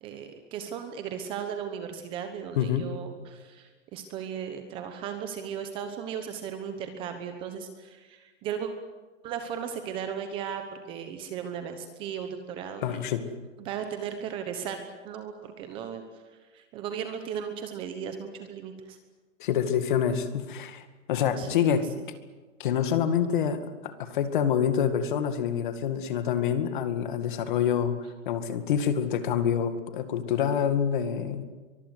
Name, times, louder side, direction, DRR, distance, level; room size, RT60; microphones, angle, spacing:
voice 1, 0.0-8.7 9.2-13.1 13.6-16.0 16.5-19.0 21.4-22.0, right 8 dB, 15° right, 7 dB, 1.0 m, -36 dB
voice 2, 2.6-2.9 12.8-13.2 19.4-21.9 22.6-27.9 28.3-31.4, left 8 dB, 40° left, 9 dB, 2.2 m, -27 dB
23.5 x 22.0 x 8.3 m, 1.3 s
hypercardioid pair, 170°, 38 cm